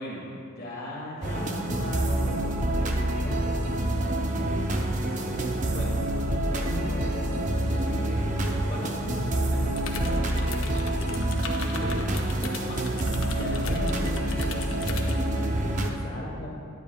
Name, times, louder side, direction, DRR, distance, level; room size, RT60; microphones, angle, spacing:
voice 1, 0.0-8.2 8.7-16.5, left 1 dB, 45° left, -4 dB, 1.2 m, -39 dB
sound 1, 1.2-15.9, right 1 dB, 35° right, 0.6 m, -27 dB
sound 2, 9.8-15.2, left 5 dB, 65° left, 0.8 m, -38 dB
10.0 x 9.9 x 2.3 m, 2.6 s
head